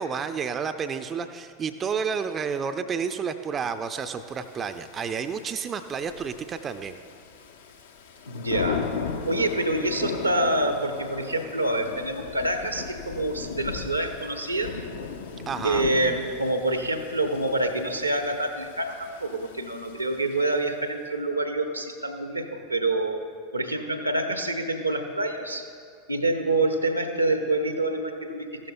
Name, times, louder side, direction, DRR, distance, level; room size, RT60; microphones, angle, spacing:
voice 1, 0.0-7.0 15.5-15.9, right 6 dB, 25° right, 9 dB, 0.4 m, -30 dB
Thunder / Rain, 4.2-20.8, left 6 dB, 65° left, 0.7 m, -38 dB
voice 2, 8.3-8.8 9.2-14.8 15.6-23.2 23.5-25.6 26.1-28.7, right 2 dB, 90° right, 6 dB, 0.8 m, -27 dB
15.0 x 12.5 x 2.2 m, 2.2 s
figure-of-eight pair, 85°, 0 cm